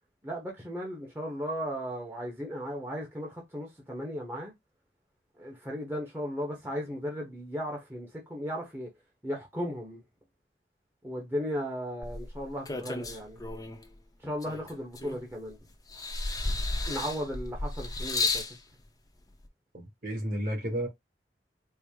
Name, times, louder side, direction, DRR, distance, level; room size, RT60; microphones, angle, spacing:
voice 1, 0.2-4.5 5.4-8.9 9.2-10.0 11.0-13.4 14.2-15.6 16.9-18.4, equal, 10° right, 1.0 m, -36 dB
sound 1, 12.0-13.8 14.4-15.5 15.9-18.5 19.4-19.5, left 3 dB, 20° left, 0.7 m, -33 dB
voice 2, 19.7-20.9, equal, 50° right, 2.0 m, -32 dB
4.6 x 2.1 x 3.5 m
head